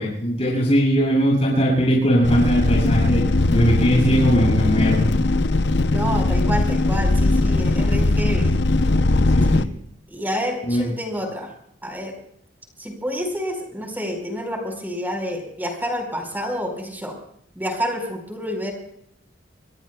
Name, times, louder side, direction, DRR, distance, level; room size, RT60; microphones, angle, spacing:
voice 1, 0.0-3.2 3.5-5.0 9.3-9.7 10.7-10.9, equal, 35° left, -3 dB, 7.3 m, -19 dB
sound 1, 2.2-9.7, left 2 dB, 65° left, 0.7 m, -19 dB
voice 2, 5.9-8.6 9.5-9.7 10.1-11.5 11.8-12.1 12.8-17.1 17.5-18.7, equal, 10° right, 3 dB, 4.6 m, -28 dB
26.5 x 22.0 x 2.3 m, 0.72 s
head